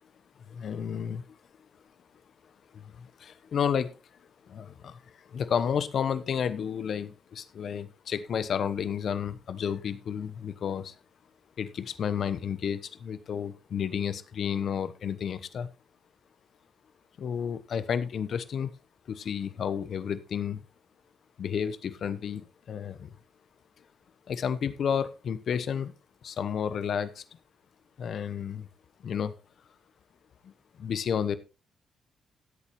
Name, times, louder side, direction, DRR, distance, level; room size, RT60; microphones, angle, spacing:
voice 1, 0.5-1.4 2.7-4.0 4.5-11.0 11.6-15.7 17.2-18.7 19.1-20.6 21.4-23.1 24.3-25.9 26.2-27.2 28.0-28.7 29.0-29.3 30.4-30.5 30.8-31.4, left 7 dB, 60° left, 14 dB, 1.1 m, -31 dB
16.5 x 8.3 x 3.2 m, 0.31 s
hypercardioid pair, 45°, 0 cm